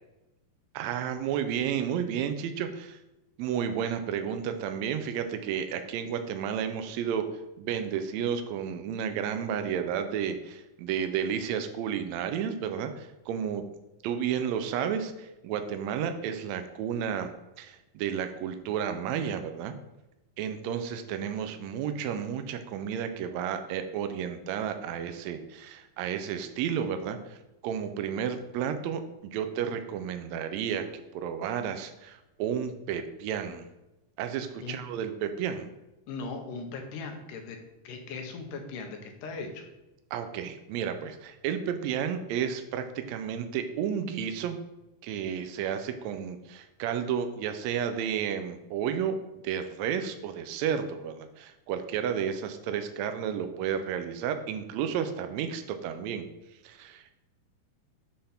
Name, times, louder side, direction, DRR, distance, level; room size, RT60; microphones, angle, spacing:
voice 1, 0.7-3.0 3.4-7.3 7.6-13.6 14.0-19.8 20.4-27.4 27.6-33.7 34.2-35.7 40.1-44.6 45.0-56.3 56.6-57.2, right 8 dB, 90° right, 8 dB, 1.5 m, -32 dB
voice 2, 36.1-37.6 37.8-39.7, left 4 dB, 75° left, 4 dB, 2.5 m, -38 dB
7.8 x 3.4 x 5.6 m, 0.96 s
omnidirectional pair, 3.8 m